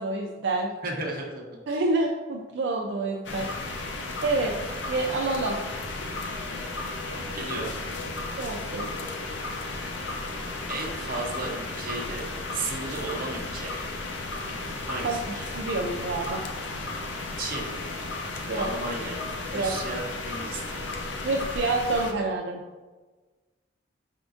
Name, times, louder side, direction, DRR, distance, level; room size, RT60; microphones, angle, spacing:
voice 1, 0.0-0.7 1.7-3.5 4.2-4.6 4.9-5.6 8.4-8.9 15.0-15.2 15.5-16.4 18.5-18.7 19.5-19.7 21.2-22.6, right 3 dB, 70° right, 0 dB, 0.4 m, -27 dB
voice 2, 0.8-1.8 7.3-7.7 10.7-13.8 14.9-15.5 17.4-17.7 18.5-19.2 19.5-20.8, right 2 dB, 50° right, -1 dB, 0.8 m, -34 dB
sound 1, 3.2-22.1, left 2 dB, 80° left, 0.5 m, -34 dB
5.1 x 3.6 x 2.4 m, 1.3 s
head